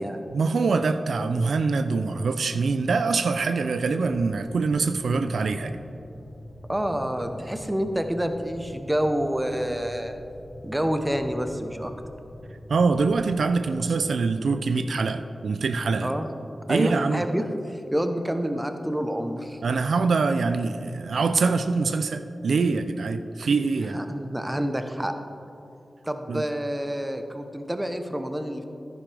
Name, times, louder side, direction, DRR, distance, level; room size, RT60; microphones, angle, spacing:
voice 1, 0.3-5.8 12.7-16.1 16.7-17.2 19.6-24.0 26.3-26.4, right 4 dB, 85° right, 9 dB, 0.4 m, -24 dB
sound 1, 4.1-13.7, left 1 dB, 40° left, 2.0 m, -44 dB
voice 2, 6.7-10.2 10.6-11.9 16.0-16.3 16.7-19.6 23.9-25.1 26.0-28.6, equal, 15° right, 7 dB, 0.9 m, -28 dB
10.5 x 10.0 x 3.4 m, 2.8 s
cardioid pair, 40°, 0 cm